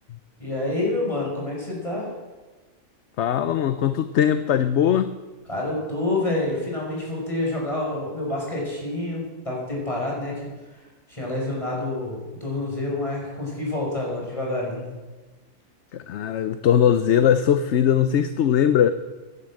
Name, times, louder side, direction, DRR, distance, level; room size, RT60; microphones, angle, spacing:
voice 1, 0.4-2.1 5.5-10.3 11.1-14.9, left 2 dB, 25° left, -3 dB, 6.1 m, -28 dB
voice 2, 3.2-5.1 15.9-18.9, left 9 dB, 60° left, 12 dB, 0.9 m, -20 dB
16.5 x 11.0 x 7.7 m, 1.2 s
omnidirectional pair, 1.4 m